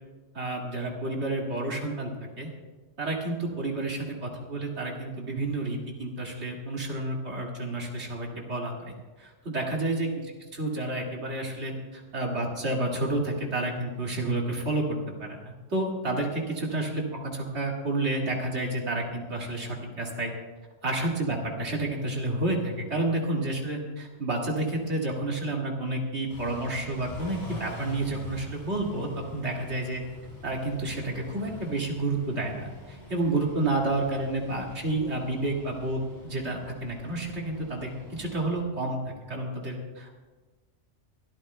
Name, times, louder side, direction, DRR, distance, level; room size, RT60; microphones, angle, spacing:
voice 1, 0.3-2.1 2.4-2.5 3.0-10.1 10.5-20.3 20.8-30.0 30.4-40.1, right 2 dB, 60° right, -1 dB, 2.5 m, -30 dB
Car / Idling / Accelerating revving vroom, 26.3-38.6, left 2 dB, 35° left, 5.1 m, -44 dB
23.0 x 13.5 x 2.2 m, 1.3 s
omnidirectional pair, 1.3 m